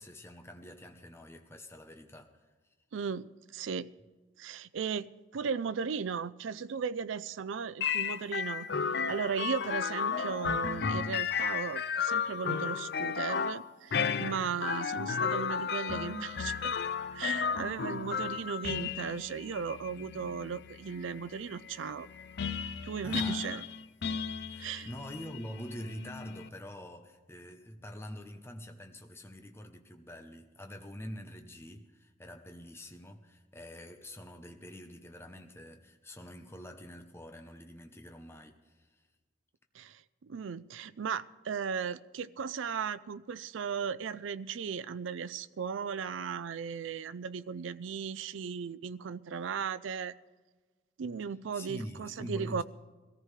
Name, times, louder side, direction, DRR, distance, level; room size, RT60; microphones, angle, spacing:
voice 1, 0.0-2.5 23.0-23.6 24.5-39.0 51.5-52.6, equal, 15° left, 0.8 m, -45 dB
voice 2, 2.9-3.9 4.4-8.7 9.1-16.7 17.1-22.1 22.8-23.6 24.6-24.9 39.7-50.1 51.0-52.6, right 6 dB, 80° right, 0.4 m, -36 dB
sound 1, 7.8-26.5, left 6 dB, 55° left, 0.5 m, -34 dB
22.0 x 14.0 x 3.3 m
head